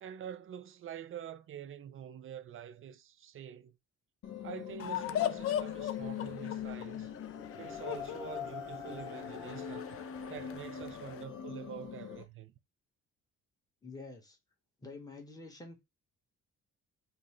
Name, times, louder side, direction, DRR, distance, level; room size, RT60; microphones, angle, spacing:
voice 1, 0.0-3.8 4.4-7.1 7.6-10.0 10.3-12.5, right 9 dB, 45° right, 0.4 m, -46 dB
sound 1, 4.2-12.2, left 8 dB, 75° left, 1.0 m, -42 dB
sound 2, 4.8-11.2, left 11 dB, 50° left, 0.4 m, -39 dB
voice 2, 13.8-14.4 14.8-15.8, left 3 dB, 10° left, 1.1 m, -48 dB
5.2 x 2.0 x 3.1 m
cardioid pair, 90°, 30 cm